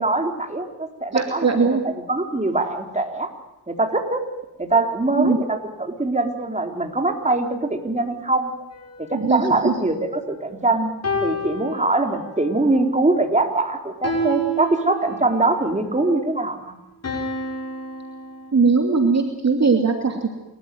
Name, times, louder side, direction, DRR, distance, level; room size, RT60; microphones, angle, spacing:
voice 1, 0.0-3.3 3.7-4.2 4.6-8.5 9.0-10.9 11.2-16.7, right 2 dB, 20° right, 4 dB, 3.9 m, -23 dB
voice 2, 1.1-1.8 5.1-5.4 9.1-9.7 18.5-20.4, right 4 dB, 45° right, 4 dB, 2.7 m, -19 dB
sound 1, 8.7-10.4 11.0-12.5 14.0-15.5 17.0-18.5, equal, 40° left, 7.2 m, -30 dB
28.0 x 14.0 x 9.4 m, 0.99 s
supercardioid pair, 50°, 38 cm